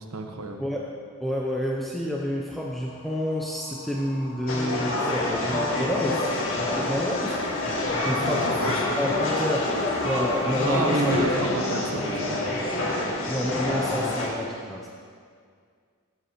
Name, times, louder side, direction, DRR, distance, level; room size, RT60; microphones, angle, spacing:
voice 1, 0.1-0.6 8.2-8.8 10.6-12.4, right 2 dB, 80° right, 4 dB, 1.0 m, -29 dB
voice 2, 1.2-6.3 6.7-7.4 8.0-9.7 10.0-11.1 13.3-14.9, equal, ahead, -3 dB, 0.5 m, -29 dB
sound 1, 2.6-11.2, left 4 dB, 25° left, 1.0 m, -38 dB
sound 2, 4.5-14.3, left 1 dB, 65° left, 1.8 m, -27 dB
15.0 x 7.4 x 3.0 m, 2.1 s
head